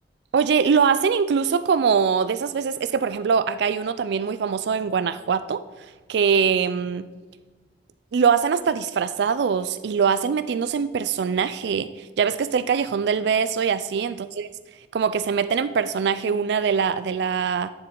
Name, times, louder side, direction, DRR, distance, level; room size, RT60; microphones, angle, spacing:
voice 1, 0.3-5.6 6.1-7.1 8.1-14.5 14.9-17.7, right 6 dB, 70° right, 13 dB, 0.4 m, -22 dB
10.5 x 7.1 x 3.8 m, 1.2 s
head